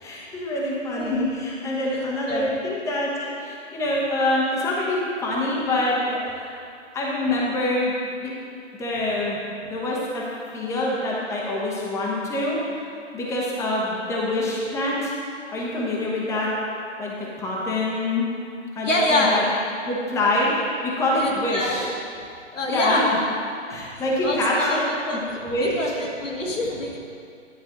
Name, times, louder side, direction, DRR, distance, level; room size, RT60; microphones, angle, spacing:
voice 1, 0.0-6.6 6.9-8.0 8.2-8.3 8.8-9.4 9.6-10.2 10.5-15.1 15.5-16.5 17.0-18.3 18.8-19.4 19.8-21.9 22.7-23.0 23.7-24.8 25.4-25.7, left 1 dB, 10° left, -4 dB, 1.0 m, -25 dB
voice 2, 1.9-2.5 18.8-19.4 21.1-21.9 22.5-23.1 23.7-23.8 24.2-27.0, left 1 dB, 85° left, -2 dB, 1.8 m, -26 dB
10.5 x 4.6 x 6.1 m, 2.4 s
figure-of-eight pair, 130°, 37 cm